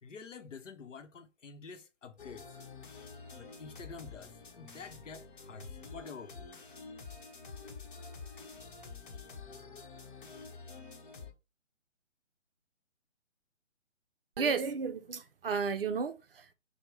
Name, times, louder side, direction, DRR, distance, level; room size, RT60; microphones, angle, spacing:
voice 1, 0.0-2.6 3.4-6.5, left 5 dB, 85° left, 0.8 m, -48 dB
sound 1, 2.2-11.3, left 4 dB, 45° left, 0.9 m, -48 dB
voice 2, 14.4-16.5, right 5 dB, 50° right, 0.5 m, -33 dB
4.9 x 2.1 x 3.3 m
hypercardioid pair, 155°, 36 cm